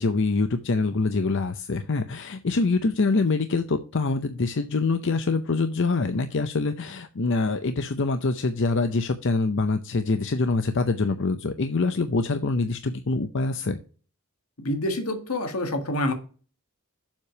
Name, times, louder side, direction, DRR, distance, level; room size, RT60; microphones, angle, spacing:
voice 1, 0.0-13.8, left 3 dB, 55° left, 0.6 m, -25 dB
voice 2, 14.6-16.1, left 1 dB, 80° left, 1.7 m, -27 dB
7.4 x 4.9 x 6.7 m
head